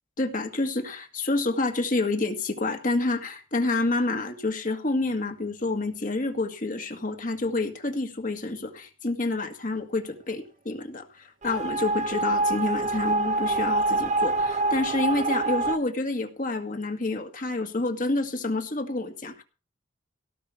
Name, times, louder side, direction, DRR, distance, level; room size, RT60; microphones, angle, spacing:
voice 1, 0.2-19.4, left 2 dB, 40° left, 5 dB, 2.0 m, -28 dB
sound 1, 11.4-15.8, right 2 dB, 35° right, 0.6 m, -26 dB
17.5 x 5.8 x 7.2 m, 0.33 s
head